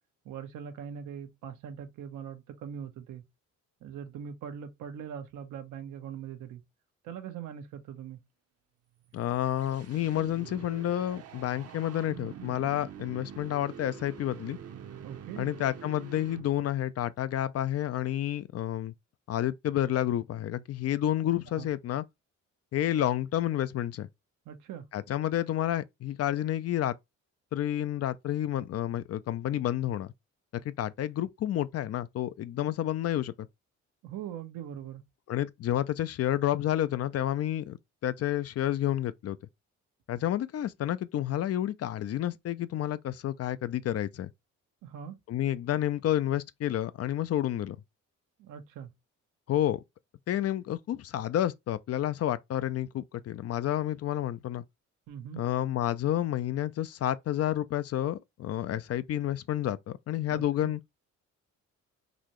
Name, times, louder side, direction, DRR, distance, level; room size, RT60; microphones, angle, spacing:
voice 1, 0.2-3.2 3.8-6.6 7.0-8.2 15.0-15.5 21.6-21.7 24.4-24.8 34.0-35.0 44.8-45.2 48.4-48.9 55.1-55.4 60.3-60.7, right 8 dB, 90° right, 1.0 m, -41 dB
sound 1, 9.0-16.8, right 8 dB, 55° right, 0.8 m, -46 dB
voice 2, 9.1-14.6 15.4-18.9 19.3-22.0 22.7-24.1 24.9-27.0 27.5-30.1 30.5-33.5 35.3-39.4 40.1-44.3 45.3-47.8 49.5-49.8 50.3-54.6 55.4-60.8, left 12 dB, 55° left, 0.5 m, -30 dB
4.1 x 2.7 x 3.0 m
cardioid pair, 90°, 30 cm